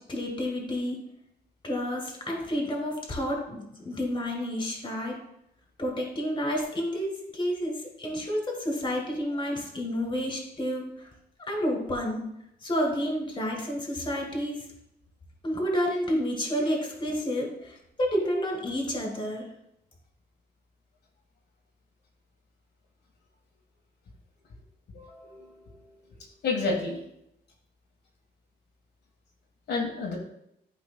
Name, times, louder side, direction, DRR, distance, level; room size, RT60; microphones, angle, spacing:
voice 1, 0.1-1.0 1.6-5.2 5.8-11.1 11.5-12.2 12.6-14.6 15.4-19.5, equal, 25° left, 0 dB, 2.2 m, -30 dB
voice 2, 24.9-25.8 26.4-27.0 29.7-30.2, left 3 dB, 70° left, -1 dB, 1.5 m, -30 dB
12.5 x 5.0 x 2.2 m, 0.79 s
wide cardioid pair, 150°, 18 cm